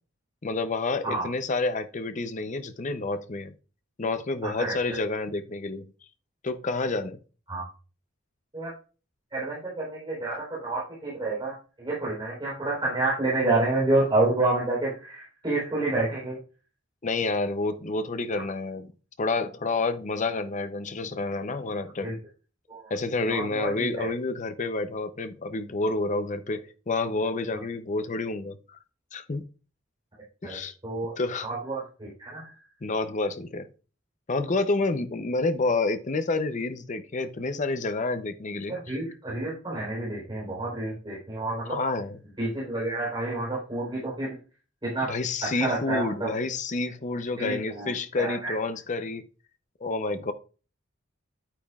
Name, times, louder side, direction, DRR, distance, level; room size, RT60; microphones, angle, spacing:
voice 1, 0.4-3.5 4.0-5.9 6.4-7.2 17.0-18.9 19.2-22.1 22.9-28.8 29.1-29.5 30.4-30.7 31.2-31.5 32.8-33.7 34.3-38.9 41.7-42.2 45.0-49.2 49.8-50.3, left 3 dB, 35° left, 0.6 m, -29 dB
voice 2, 4.4-5.0 7.5-7.7 8.5-8.7 9.3-16.4 22.0-22.2 22.7-22.8 23.3-24.1 27.5-27.6 30.4-31.1 31.4-32.5 38.7-41.7 42.4-44.4 44.8-45.1 45.4-46.4 47.4-48.5, right 2 dB, 25° right, 3.7 m, -29 dB
9.2 x 8.9 x 2.4 m
head